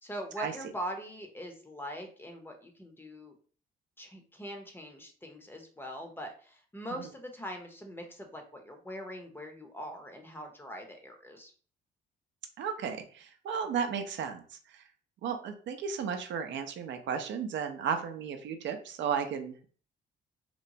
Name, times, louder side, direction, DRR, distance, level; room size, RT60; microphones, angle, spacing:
voice 1, 0.0-3.4 4.0-11.5, equal, 10° left, 4 dB, 0.6 m, -42 dB
voice 2, 12.6-14.4 15.2-19.7, right 7 dB, 70° right, 6 dB, 0.5 m, -34 dB
2.9 x 2.1 x 2.6 m, 0.43 s
cardioid pair, 90°, 20 cm